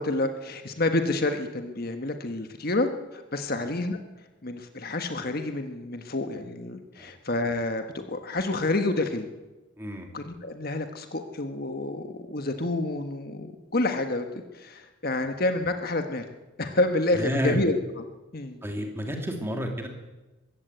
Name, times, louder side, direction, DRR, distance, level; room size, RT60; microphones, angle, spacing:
voice 1, 0.0-4.0 4.4-9.3 10.1-14.3 14.5-16.2 16.6-18.0 18.3-18.6, left 2 dB, 45° left, 6 dB, 1.4 m, -28 dB
voice 2, 9.8-10.1 17.1-17.6 18.6-19.9, equal, 10° right, 2 dB, 2.7 m, -30 dB
21.5 x 16.0 x 8.2 m, 1.1 s
head